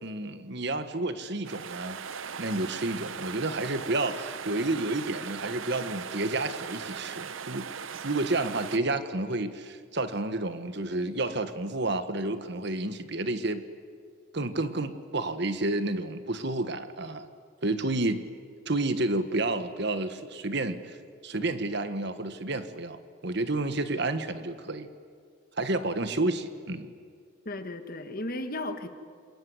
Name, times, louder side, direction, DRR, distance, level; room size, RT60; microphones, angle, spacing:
voice 1, 0.0-2.0 2.4-7.7 8.0-13.6 14.3-17.3 17.6-18.2 18.6-20.8 21.2-24.9 25.6-26.9, right 2 dB, 55° right, 10 dB, 1.4 m, -30 dB
sound 1, 1.4-8.8, right 7 dB, 70° right, 0.7 m, -39 dB
voice 2, 27.4-28.9, left 1 dB, 45° left, 8 dB, 1.6 m, -35 dB
27.0 x 22.0 x 9.6 m, 2.1 s
head